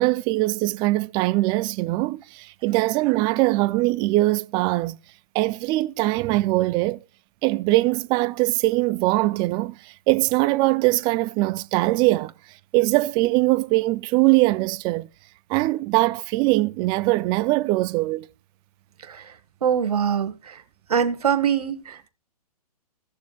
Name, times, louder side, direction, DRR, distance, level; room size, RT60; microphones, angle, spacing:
voice 1, 0.0-5.0 5.3-7.0 7.4-12.3 12.7-15.1 15.5-18.3, right 20 dB, 25° right, 0.4 m, -22 dB
voice 2, 19.6-20.6 20.9-22.1, right 8 dB, 70° right, 1.3 m, -23 dB
16.5 x 6.8 x 2.2 m
hypercardioid pair, 120°, 20 cm